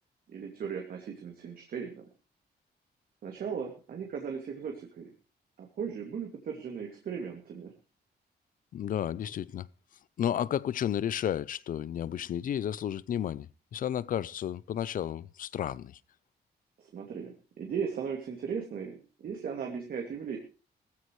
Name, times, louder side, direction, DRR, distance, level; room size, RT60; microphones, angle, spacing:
voice 1, 0.3-2.1 3.2-5.1 5.6-7.7 16.8-20.4, right 6 dB, 55° right, 2.6 m, -37 dB
voice 2, 8.7-9.7 10.2-13.5 13.7-16.0, left 10 dB, 50° left, 0.6 m, -32 dB
19.0 x 14.5 x 3.2 m
wide cardioid pair, 180°, 17 cm